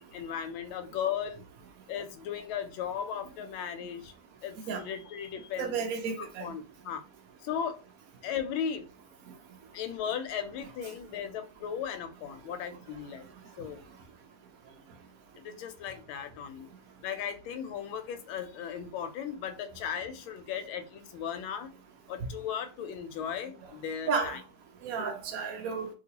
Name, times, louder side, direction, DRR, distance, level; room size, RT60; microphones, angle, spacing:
voice 1, 0.1-1.4 1.9-4.1 4.4-5.7 6.2-7.0 7.4-7.8 8.2-8.9 9.7-13.2 13.6-13.8 15.4-16.7 17.0-21.7 22.1-24.4, left 8 dB, 90° left, 1.4 m, -36 dB
voice 2, 5.6-6.4 24.1-24.4 24.8-25.9, right 5 dB, 80° right, 0.7 m, -32 dB
2.9 x 2.9 x 2.8 m
omnidirectional pair, 2.2 m